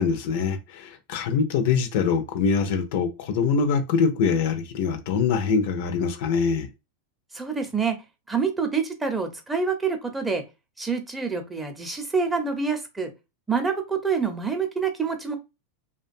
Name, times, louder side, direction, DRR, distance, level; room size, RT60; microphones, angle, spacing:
voice 1, 0.0-6.7, left 5 dB, 60° left, 0.5 m, -24 dB
voice 2, 7.3-8.0 8.3-10.4 10.8-13.1 13.5-15.4, right 5 dB, 10° right, 0.6 m, -26 dB
2.5 x 2.2 x 2.5 m
hypercardioid pair, 100°, 0 cm